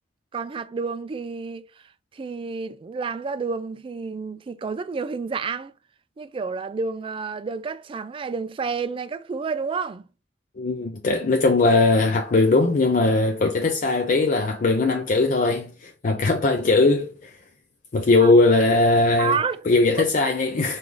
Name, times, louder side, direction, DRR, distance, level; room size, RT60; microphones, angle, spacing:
voice 1, 0.3-1.6 2.1-5.7 6.2-10.1 18.2-18.3 19.2-19.6, right 5 dB, 30° right, 0.3 m, -29 dB
voice 2, 10.6-17.3 17.9-19.4 19.7-20.8, left 3 dB, 45° left, 0.4 m, -19 dB
4.6 x 2.5 x 3.7 m
head